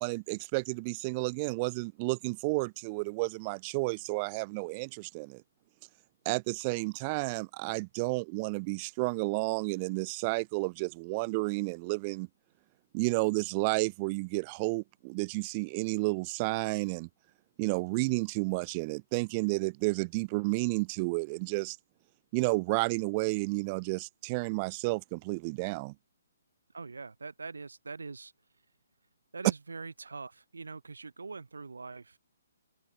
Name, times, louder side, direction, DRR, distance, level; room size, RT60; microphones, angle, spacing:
voice 1, 0.0-5.4 6.3-12.3 12.9-17.1 17.6-21.8 22.3-25.9, right 28 dB, 30° right, 0.3 m, -31 dB
voice 2, 26.7-28.3 29.3-32.2, right 4 dB, 75° right, 2.9 m, -43 dB
open air
figure-of-eight pair, 135°, 0 cm